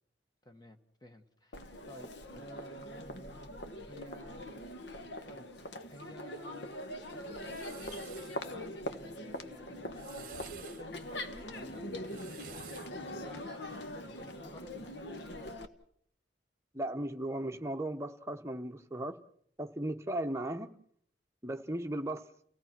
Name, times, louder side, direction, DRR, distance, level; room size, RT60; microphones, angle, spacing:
voice 1, 0.4-4.6 5.3-5.5 5.9-6.8 7.1-13.8 14.1-15.7, right 1 dB, 20° left, 1.3 m, -54 dB
Crowd, 1.5-15.6, left 1 dB, 75° left, 1.3 m, -42 dB
sound 1, 7.1-8.4 9.8-10.8 11.9-13.0, right 10 dB, 50° right, 0.9 m, -52 dB
voice 2, 16.7-19.2 19.6-20.7 21.4-22.2, right 1 dB, 15° right, 0.9 m, -36 dB
30.0 x 17.0 x 6.0 m
head